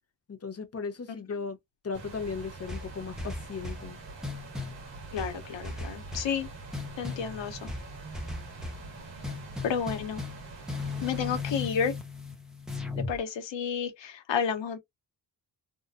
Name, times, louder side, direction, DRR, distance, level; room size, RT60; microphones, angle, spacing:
voice 1, 0.3-1.6 1.8-4.0, left 5 dB, 35° left, 0.9 m, -36 dB
sound 1, 1.9-11.4, right 3 dB, 85° right, 1.7 m, -44 dB
sound 2, 2.7-3.9 4.2-4.8 5.2-6.4 6.7-7.3 7.7-8.9 9.2-10.4 10.7-13.2, left 3 dB, ahead, 0.8 m, -37 dB
voice 2, 5.1-6.5 7.0-7.7 9.6-10.2 11.0-11.9 13.0-14.8, left 7 dB, 90° left, 1.2 m, -31 dB
3.6 x 2.5 x 2.4 m
wide cardioid pair, 155°, 43 cm